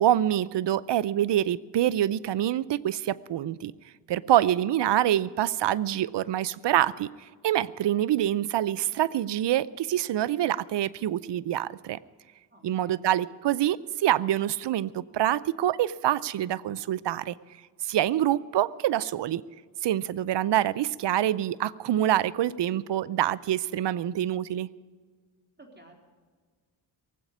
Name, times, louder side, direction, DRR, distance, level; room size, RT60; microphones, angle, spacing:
voice 1, 0.0-3.7 4.1-7.1 7.4-12.0 12.6-17.3 17.8-19.4 19.8-24.7, right 12 dB, 75° right, 19 dB, 0.6 m, -26 dB
voice 2, 12.5-13.0 25.6-25.9, right 1 dB, 25° right, 1 dB, 3.8 m, -53 dB
18.0 x 8.1 x 9.7 m, 1.5 s
cardioid pair, 60°, 43 cm